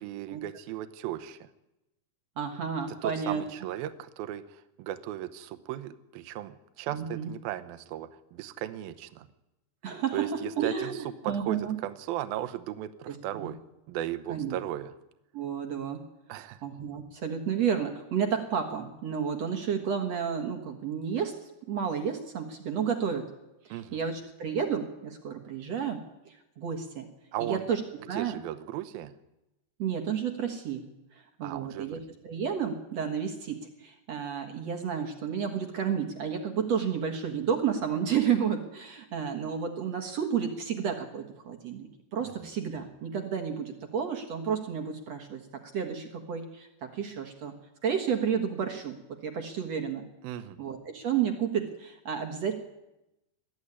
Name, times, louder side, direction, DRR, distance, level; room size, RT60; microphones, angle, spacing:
voice 1, 0.0-1.5 3.0-9.3 10.1-11.0 11.2-13.6 13.9-14.9 16.3-16.6 23.7-24.0 27.3-27.6 28.1-29.1 31.4-32.0 42.2-42.3 50.2-50.6, right 12 dB, 75° right, 11 dB, 2.5 m, -36 dB
voice 2, 2.4-3.4 6.9-7.3 9.8-11.8 13.1-13.5 14.3-14.6 15.3-16.0 16.6-23.3 23.6-26.0 26.3-27.1 27.4-27.8 28.1-28.4 29.8-30.8 31.1-47.5 47.8-50.1 50.6-52.6, right 7 dB, 55° right, 4 dB, 2.0 m, -31 dB
21.0 x 14.0 x 9.8 m, 0.93 s
omnidirectional pair, 4.8 m